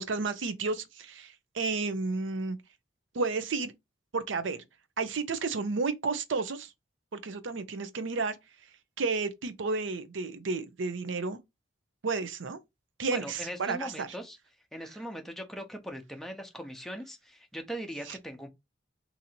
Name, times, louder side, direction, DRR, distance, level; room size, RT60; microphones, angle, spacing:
voice 1, 0.0-2.6 3.1-3.7 4.1-4.6 5.0-6.7 7.1-8.4 9.0-11.4 12.0-12.6 13.0-14.1 18.1-18.2, right 4 dB, 80° right, 0.6 m, -32 dB
voice 2, 13.1-14.4 14.7-18.5, equal, ahead, 0.6 m, -40 dB
2.7 x 2.6 x 4.2 m
head